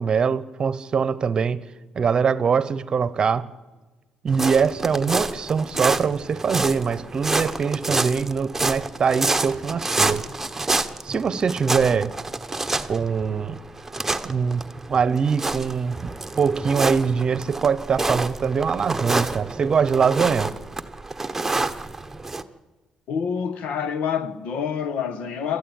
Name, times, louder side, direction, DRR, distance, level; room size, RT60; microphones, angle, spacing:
voice 1, 0.0-1.6 1.9-3.5 4.2-10.3 11.0-12.1 12.9-13.6 14.2-14.6 14.9-20.5, right 6 dB, 40° right, 0.9 m, -23 dB
sound 1, 4.3-22.4, right 3 dB, 15° right, 1.1 m, -28 dB
voice 2, 23.1-25.6, left 7 dB, 75° left, 1.4 m, -27 dB
27.5 x 13.5 x 9.0 m
cardioid pair, 100°, 2 cm